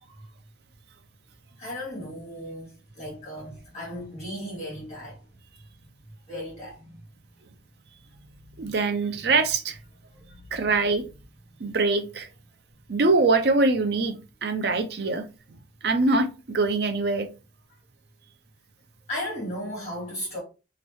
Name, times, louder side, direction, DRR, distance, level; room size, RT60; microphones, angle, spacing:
voice 1, 1.6-2.7 2.9-5.2 6.3-7.0 8.6-8.7 10.3-10.4 19.1-20.4, equal, 35° left, 2.0 m, -35 dB
voice 2, 8.6-9.8 10.5-11.0 11.6-12.3 12.9-15.2 15.8-17.3, right 3 dB, 55° right, 0.5 m, -23 dB
3.1 x 2.9 x 3.1 m
head